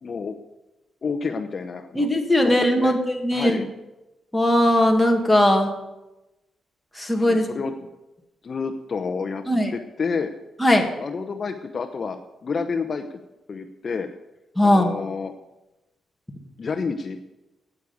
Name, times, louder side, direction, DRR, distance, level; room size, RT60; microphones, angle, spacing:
voice 1, 0.0-0.4 1.0-2.1 2.4-3.0 3.3-3.7 7.2-7.7 8.4-9.4 9.7-10.3 11.0-13.2 13.5-14.1 14.6-15.3 16.6-17.2, left 5 dB, 40° left, 7 dB, 0.7 m, -29 dB
voice 2, 1.9-3.6 4.3-5.7 6.9-7.5 9.5-9.7 10.6-10.9 14.5-14.9, left 1 dB, 5° left, 2 dB, 1.7 m, -19 dB
9.7 x 8.5 x 9.3 m, 1.0 s
wide cardioid pair, 155°, 0 cm